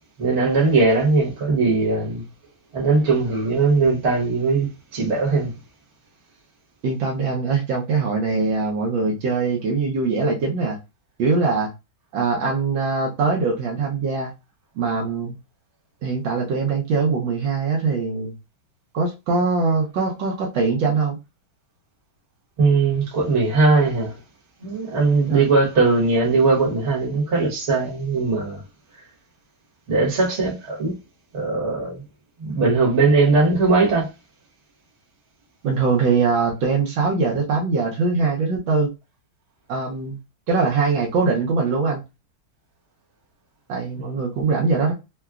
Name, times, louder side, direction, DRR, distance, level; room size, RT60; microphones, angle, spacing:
voice 1, 0.2-2.2 2.7-5.5 22.6-24.2 24.6-28.6 29.9-30.9 31.3-32.0 32.4-34.1, right 3 dB, 40° right, 1.2 m, -19 dB
voice 2, 6.8-10.8 11.2-11.7 12.1-14.3 14.8-15.4 16.0-18.3 18.9-21.2 25.3-25.5 35.6-38.9 39.7-40.2 40.5-42.0 43.7-44.9, right 4 dB, 75° right, 1.4 m, -22 dB
3.7 x 2.1 x 2.3 m
omnidirectional pair, 2.2 m